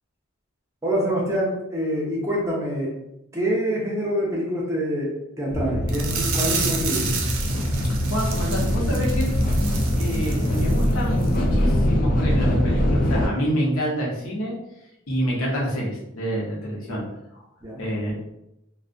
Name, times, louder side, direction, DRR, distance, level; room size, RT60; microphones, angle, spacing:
voice 1, 0.8-2.9 3.3-7.2 17.6-17.8, equal, 15° right, -4 dB, 0.5 m, -26 dB
sound 1, 5.5-13.3, equal, 40° left, 0.3 m, -22 dB
sound 2, 5.9-10.9 11.2-11.4 11.8-11.9, right 5 dB, 85° right, 0.4 m, -31 dB
voice 2, 8.0-9.3 10.0-14.6 15.1-17.0 17.3-17.4 17.8-18.1, equal, 85° left, -3 dB, 0.8 m, -27 dB
2.5 x 2.1 x 2.5 m, 0.85 s
head